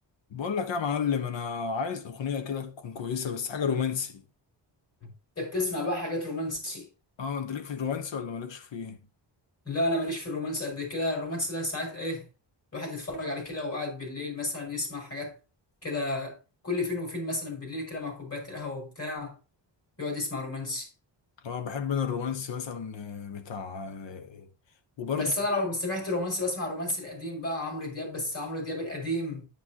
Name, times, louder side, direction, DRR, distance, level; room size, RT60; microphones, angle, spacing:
voice 1, 0.3-4.2 7.2-9.0 21.4-24.5 25.0-25.3, left 6 dB, 75° left, 1.3 m, -32 dB
voice 2, 5.4-6.9 9.7-12.2 12.7-15.3 15.8-16.3 16.6-19.4 20.0-20.9 25.1-29.5, left 2 dB, 30° left, 5.7 m, -32 dB
9.5 x 8.9 x 3.0 m
wide cardioid pair, 165°, 45 cm